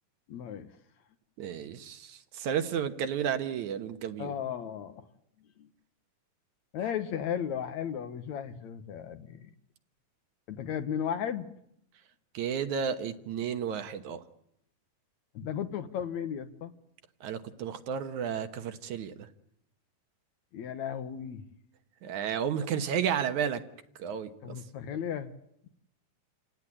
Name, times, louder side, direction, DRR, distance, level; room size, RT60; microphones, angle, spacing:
voice 1, 0.3-0.7 4.2-5.1 5.6-5.7 6.7-9.5 10.5-11.5 15.3-16.7 20.5-21.4 24.4-25.3, left 8 dB, 65° left, 10 dB, 2.4 m, -35 dB
voice 2, 1.4-4.3 12.3-14.2 17.2-19.1 22.0-23.6 24.0-24.6, right 8 dB, 70° right, 8 dB, 2.5 m, -32 dB
28.5 x 17.0 x 9.9 m, 0.76 s
omnidirectional pair, 3.7 m